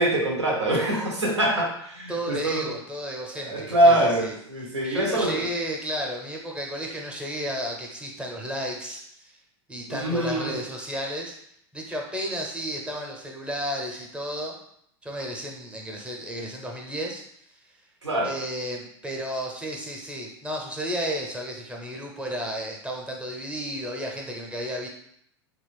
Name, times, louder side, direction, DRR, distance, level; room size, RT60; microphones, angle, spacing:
voice 1, 0.0-2.7 3.4-5.4 9.9-10.6 18.0-18.3, right 1 dB, 90° right, 0 dB, 0.9 m, -24 dB
voice 2, 2.1-4.3 4.8-9.4 9.7-11.3 11.7-14.6 15.0-17.2 18.2-24.9, equal, 5° right, -1 dB, 0.7 m, -32 dB
3.0 x 2.5 x 3.4 m, 0.71 s
hypercardioid pair, 100°, 14 cm